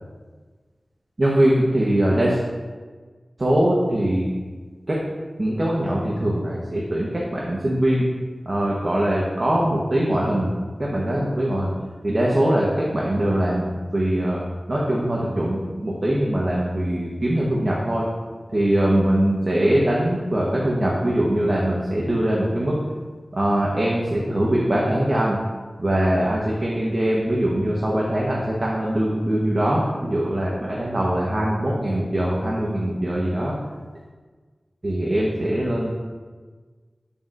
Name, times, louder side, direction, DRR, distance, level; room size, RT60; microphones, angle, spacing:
voice 1, 1.2-2.4 3.4-4.3 4.9-5.0 5.4-8.0 8.4-10.5 10.8-11.7 12.0-14.4 14.7-18.0 18.5-22.8 23.3-25.4 25.8-33.5 34.8-35.9, right 1 dB, 45° right, -4 dB, 1.2 m, -22 dB
9.2 x 6.9 x 2.6 m, 1.4 s
wide cardioid pair, 65°, 0 cm